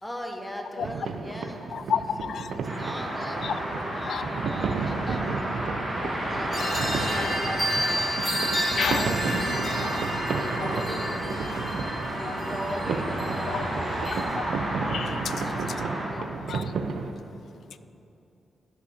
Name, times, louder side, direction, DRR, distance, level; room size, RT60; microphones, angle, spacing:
voice 1, 0.0-2.0 2.3-5.3 6.0-6.5 7.0-8.2 8.5-11.7 12.0-14.4 15.3-16.3, equal, 5° left, 0.9 m, -39 dB
sound 1, 0.8-17.1, right 4 dB, 80° right, 0.6 m, -33 dB
voice 2, 1.7-2.6 3.4-3.5 4.1-4.3 7.2-7.4 8.8-9.1 12.3-12.4 13.5-13.7 14.4-14.5 14.9-15.3 16.5-16.6, left 8 dB, 70° left, 0.3 m, -30 dB
sound 2, 2.6-16.1, right 1 dB, 35° right, 2.5 m, -32 dB
sound 3, 6.5-14.2, equal, 30° left, 2.7 m, -31 dB
10.5 x 5.9 x 7.0 m
wide cardioid pair, 135°, 0 cm